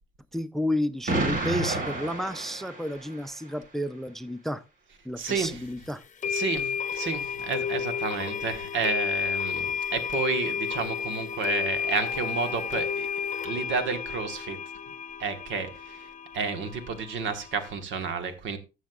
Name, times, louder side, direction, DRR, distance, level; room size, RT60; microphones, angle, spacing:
voice 1, 0.3-4.6 5.0-6.0, left 1 dB, ahead, 0.4 m, -31 dB
Explosion, 1.1-3.3, right 2 dB, 45° right, 2.2 m, -30 dB
voice 2, 5.2-5.7 6.3-13.1 13.4-14.6 14.9-15.0 15.2-16.1 16.3-18.6, right 5 dB, 80° right, 1.3 m, -31 dB
sound 1, 5.3-5.4 6.2-17.8, left 7 dB, 40° left, 0.7 m, -32 dB
15.0 x 6.3 x 2.4 m
cardioid pair, 90°, 20 cm